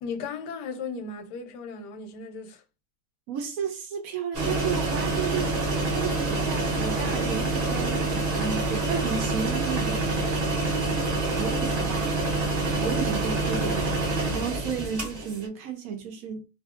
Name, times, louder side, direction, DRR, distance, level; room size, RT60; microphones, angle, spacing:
voice 1, 0.0-2.6, left 5 dB, 90° left, 1.2 m, -36 dB
voice 2, 3.3-12.2 12.8-14.0 14.3-16.5, right 7 dB, 70° right, 0.9 m, -33 dB
sound 1, 4.3-15.5, right 2 dB, 40° right, 0.6 m, -27 dB
2.7 x 2.6 x 2.3 m
omnidirectional pair, 1.8 m